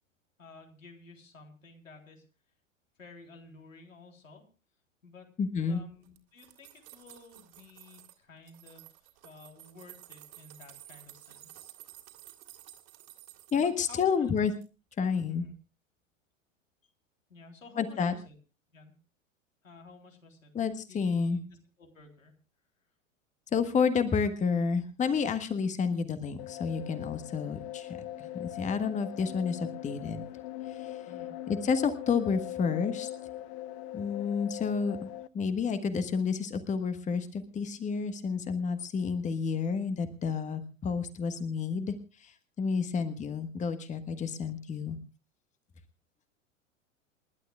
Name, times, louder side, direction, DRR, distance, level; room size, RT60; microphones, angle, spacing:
voice 1, 0.4-2.2 3.0-4.5 5.0-5.3 5.7-11.8 13.6-14.3 15.3-15.6 17.3-18.4 18.7-18.9 19.6-20.5 20.9-22.4 31.1-31.4 42.7-43.0, left 3 dB, 80° left, 3 dB, 3.7 m, -53 dB
voice 2, 5.4-5.8 13.5-14.5 15.0-15.4 17.8-18.1 20.5-21.4 23.5-30.2 30.7-31.0 31.6-33.1 33.9-35.1 35.3-45.0, left 5 dB, 20° left, 10 dB, 1.4 m, -30 dB
sound 1, 6.0-8.2 8.5-13.7 14.1-14.7 14.9-15.0, right 16 dB, 45° right, 2.9 m, -53 dB
sound 2, 26.4-35.3, left 13 dB, 35° left, 0.7 m, -41 dB
28.5 x 12.0 x 2.4 m, 0.32 s
figure-of-eight pair, 90°, 39 cm